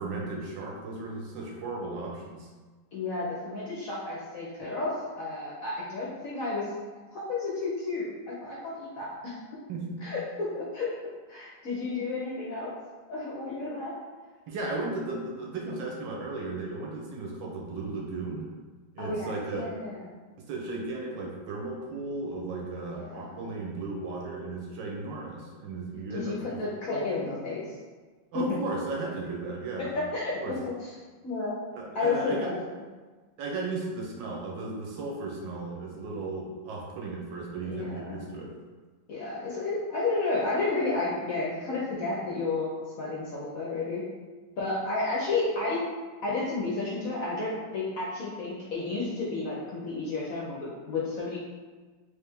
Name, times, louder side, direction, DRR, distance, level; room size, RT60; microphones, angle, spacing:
voice 1, 0.0-2.5 9.7-10.0 14.5-18.5 18.9-19.7 20.5-26.6 28.3-30.0 30.4-30.6 31.7-32.5 33.4-38.6, right 3 dB, 80° right, -1 dB, 1.4 m, -35 dB
voice 2, 2.9-6.7 7.1-9.4 10.0-10.9 11.3-12.7 13.1-13.9 19.0-20.1 22.9-23.4 26.1-27.7 28.3-28.5 29.8-30.9 31.2-31.6 31.9-32.6 37.6-38.2 39.1-42.7 43.0-44.0 44.6-45.8 46.2-51.4, left 3 dB, 65° left, -5 dB, 0.9 m, -31 dB
3.3 x 3.2 x 3.4 m, 1.4 s
omnidirectional pair, 2.0 m